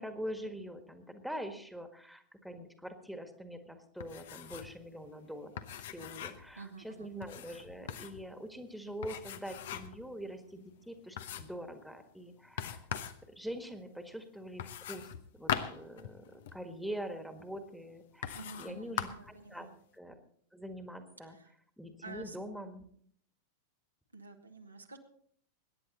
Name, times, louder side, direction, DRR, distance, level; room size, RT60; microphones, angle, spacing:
voice 1, 0.0-5.5 5.8-12.9 13.3-19.7 19.9-20.2 20.5-21.4 21.8-22.8, equal, ahead, 7 dB, 1.6 m, -44 dB
sound 1, 4.0-4.8 5.0-5.1 5.6-6.5 7.2-8.3 9.0-10.0 10.5-10.6 11.2-11.6 12.6-13.2 14.6-16.6 17.4-17.5 18.2-18.7 19.0-19.3, left 10 dB, 55° left, 0.9 m, -40 dB
voice 2, 6.6-7.1 18.3-19.7 22.0-22.4 24.1-25.0, right 3 dB, 80° right, 3 dB, 1.6 m, -49 dB
21.5 x 9.9 x 4.1 m, 0.62 s
figure-of-eight pair, 90°, 0 cm